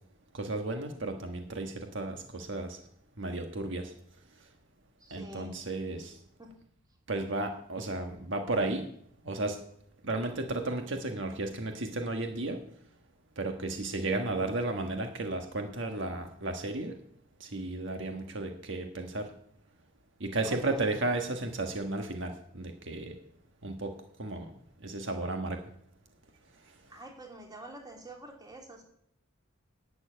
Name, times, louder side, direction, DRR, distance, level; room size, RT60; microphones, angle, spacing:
voice 1, 0.3-2.8 3.2-3.9 5.1-6.2 7.1-8.8 9.2-9.6 10.0-12.6 13.4-17.0 17.4-19.3 20.2-23.1 23.6-24.5 24.8-25.6, right 2 dB, 65° right, 4 dB, 1.5 m, -33 dB
voice 2, 5.0-5.6 6.4-6.5 20.5-20.8 26.9-28.8, right 1 dB, 20° right, 1 dB, 2.9 m, -47 dB
11.5 x 7.2 x 9.0 m, 0.68 s
head